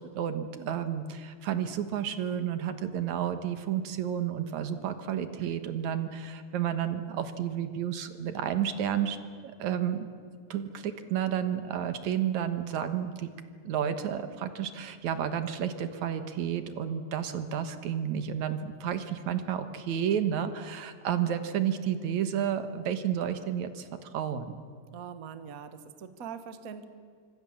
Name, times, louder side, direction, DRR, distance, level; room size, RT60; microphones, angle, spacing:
voice 1, 0.1-9.2 9.4-10.1 10.5-13.3 13.6-24.6, right 9 dB, 65° right, 10 dB, 2.5 m, -31 dB
voice 2, 24.9-26.8, right 7 dB, 85° right, 10 dB, 0.7 m, -42 dB
25.0 x 25.0 x 7.3 m, 2.1 s
omnidirectional pair, 3.9 m